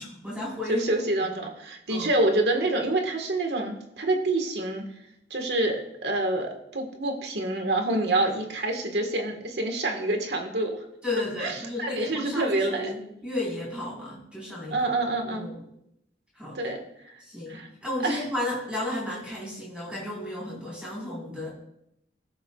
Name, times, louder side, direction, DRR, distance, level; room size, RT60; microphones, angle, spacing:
voice 1, 0.0-0.8 1.9-2.1 11.0-14.8 15.2-15.6 16.4-16.6 17.2-21.5, left 1 dB, 5° right, -7 dB, 4.2 m, -33 dB
voice 2, 0.7-4.8 5.3-10.8 11.4-12.9 14.7-15.5 16.5-16.8 17.5-17.7 18.0-18.2, right 2 dB, 75° right, 3 dB, 1.5 m, -27 dB
18.5 x 7.1 x 2.4 m, 0.77 s
head